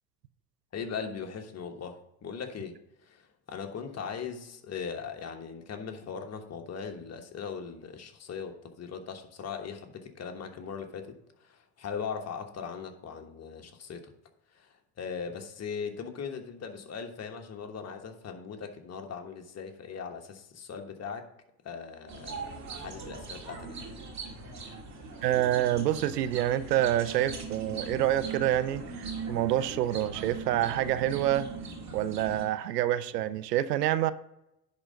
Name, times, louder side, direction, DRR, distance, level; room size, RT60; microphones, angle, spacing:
voice 1, 0.7-11.1 11.4-14.1 14.5-21.3 21.6-24.0, left 6 dB, 30° left, 5 dB, 1.3 m, -39 dB
sound 1, 22.1-32.4, right 4 dB, 35° right, 2.3 m, -40 dB
voice 2, 25.2-31.5 31.9-34.1, right 12 dB, 85° right, 15 dB, 0.6 m, -27 dB
10.5 x 3.8 x 5.2 m, 0.84 s
hypercardioid pair, 75°, 47 cm